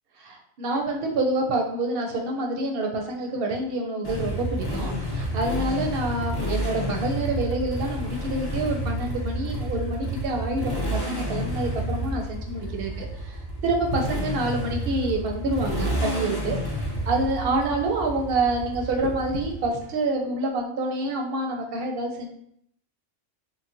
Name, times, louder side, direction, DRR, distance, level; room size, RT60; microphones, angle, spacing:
voice 1, 0.2-16.6 17.1-22.3, right 2 dB, 60° right, 2 dB, 0.7 m, -27 dB
Motorcycle, 4.0-19.8, equal, 30° left, 0.4 m, -30 dB
3.8 x 2.0 x 2.5 m, 0.71 s
omnidirectional pair, 1.3 m